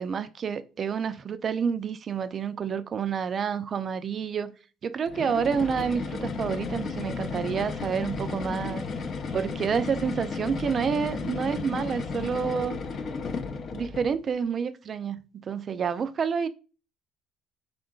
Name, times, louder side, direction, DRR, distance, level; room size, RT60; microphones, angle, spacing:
voice 1, 0.0-4.5 4.8-8.8 9.3-12.8 13.7-16.5, right 6 dB, 45° right, 0.3 m, -29 dB
sound 1, 5.1-14.2, left 4 dB, 50° left, 0.5 m, -34 dB
3.7 x 3.7 x 2.3 m
supercardioid pair, 90°, 0 cm